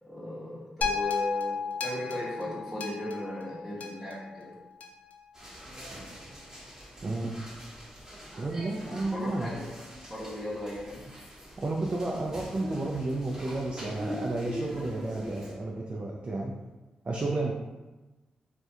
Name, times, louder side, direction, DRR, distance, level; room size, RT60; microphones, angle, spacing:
voice 1, 0.0-4.6 9.1-9.7 10.1-11.0, equal, ahead, -9 dB, 0.8 m, -37 dB
String echo, 0.8-5.1 5.8-5.9, left 5 dB, 65° left, 0.3 m, -34 dB
sound 1, 5.3-15.5, equal, 20° right, 1.0 m, -43 dB
voice 2, 7.0-7.4 8.4-9.5 11.6-16.5 17.1-17.5, right 2 dB, 40° right, -2 dB, 0.3 m, -32 dB
2.3 x 2.1 x 2.7 m, 1.1 s
supercardioid pair, 50°, 3 cm